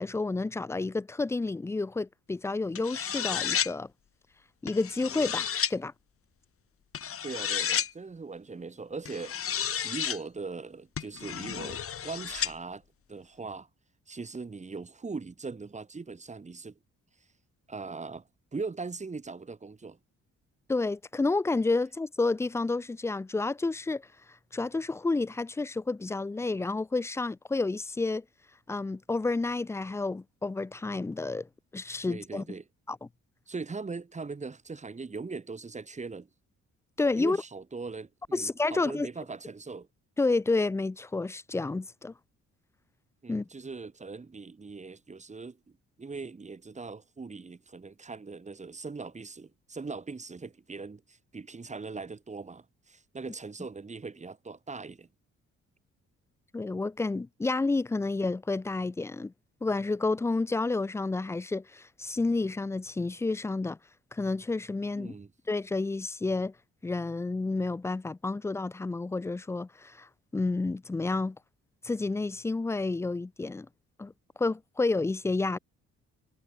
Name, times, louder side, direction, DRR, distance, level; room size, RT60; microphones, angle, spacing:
voice 1, 0.0-3.9 4.6-5.9 20.7-24.0 24.5-28.2 28.7-31.5 31.7-32.4 32.9-33.0 37.0-37.4 38.3-39.1 40.2-42.1 43.3-43.5 56.5-59.3 59.6-63.8 64.1-65.1 65.5-66.5 66.8-71.4 71.8-73.7 74.0-74.1 74.4-75.6, left 3 dB, 10° left, 0.3 m, -30 dB
sound 1, 2.7-3.7 4.7-5.7 6.9-7.9 9.1-10.2 11.0-12.5, left 8 dB, 45° left, 1.5 m, -32 dB
voice 2, 7.2-9.4 9.8-12.8 13.1-13.7 14.1-16.8 17.7-18.2 18.5-20.0 32.0-32.6 33.5-36.3 37.2-39.9 43.2-55.1 65.0-65.3, right 4 dB, 25° right, 1.5 m, -40 dB
cardioid pair, 90°, 30 cm